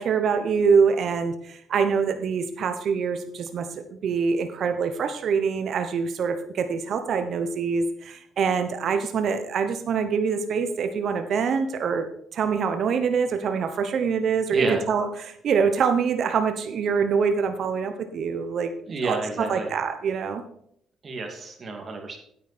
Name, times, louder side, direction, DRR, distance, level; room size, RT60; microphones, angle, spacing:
voice 1, 0.0-12.1 12.3-20.4, right 6 dB, 60° right, 8 dB, 1.0 m, -25 dB
voice 2, 14.5-14.8 18.9-19.7 21.0-22.2, right 3 dB, 40° right, 2 dB, 2.6 m, -29 dB
9.1 x 9.0 x 4.3 m, 0.68 s
cardioid pair, 95°, 0 cm